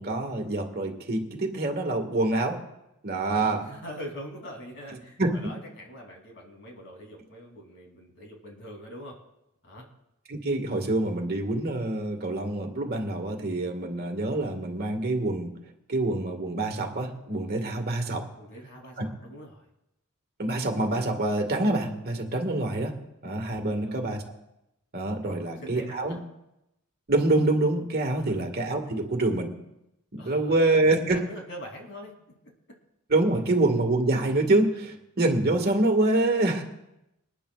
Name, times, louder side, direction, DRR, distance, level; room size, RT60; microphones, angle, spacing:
voice 1, 0.0-2.6 3.0-3.6 5.2-5.3 10.3-15.5 15.9-18.2 19.0-19.1 20.4-22.9 23.2-24.2 24.9-26.2 27.1-29.5 30.1-31.2 33.1-36.6, right 2 dB, 45° right, 3 dB, 1.6 m, -26 dB
voice 2, 3.3-9.2 9.6-9.9 17.7-18.1 18.4-19.7 23.5-24.0 25.2-26.2 28.2-28.4 30.2-32.1, equal, 55° left, 1 dB, 2.9 m, -43 dB
26.5 x 10.0 x 2.3 m, 0.87 s
head